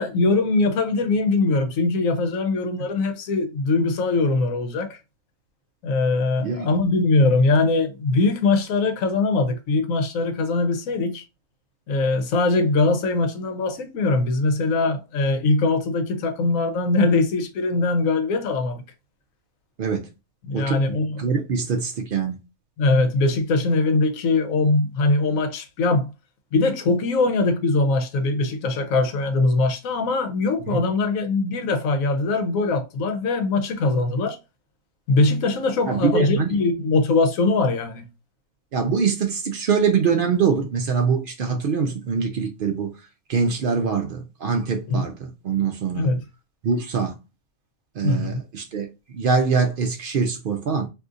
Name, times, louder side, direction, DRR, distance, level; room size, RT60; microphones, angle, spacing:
voice 1, 0.0-5.0 5.8-11.2 11.9-18.8 20.4-21.3 22.8-26.1 26.5-34.4 35.1-38.1 44.9-45.0 45.9-46.2 48.0-48.4, left 3 dB, 75° left, 1.1 m, -21 dB
voice 2, 20.5-22.4 30.7-30.9 35.9-36.6 38.7-42.9 43.3-46.1 46.6-47.1 48.0-50.9, right 5 dB, 90° right, 0.4 m, -24 dB
2.7 x 2.5 x 3.6 m
omnidirectional pair, 1.5 m